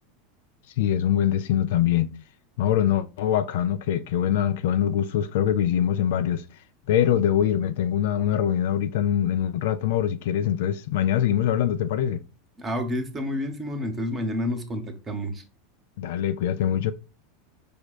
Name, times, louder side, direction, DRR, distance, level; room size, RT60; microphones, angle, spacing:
voice 1, 0.8-2.1 2.6-6.4 6.9-12.2 16.0-16.9, left 10 dB, 60° left, 0.3 m, -23 dB
voice 2, 12.6-15.4, left 1 dB, 25° right, 0.9 m, -29 dB
5.1 x 2.2 x 4.0 m
figure-of-eight pair, 85°, 0 cm